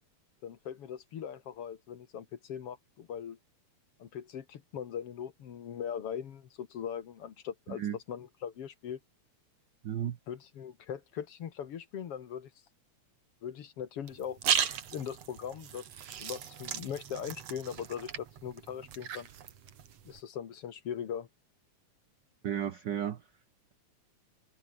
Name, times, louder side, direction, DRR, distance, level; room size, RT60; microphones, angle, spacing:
voice 1, 0.4-3.4 4.0-9.0 10.0-12.5 13.4-19.3 20.0-21.3, left 8 dB, 55° left, 2.3 m, -40 dB
voice 2, 9.8-10.2 22.4-23.3, right 10 dB, 80° right, 1.0 m, -33 dB
sound 1, 14.1-20.2, right 9 dB, 60° right, 2.8 m, -36 dB
omnidirectional pair, 3.4 m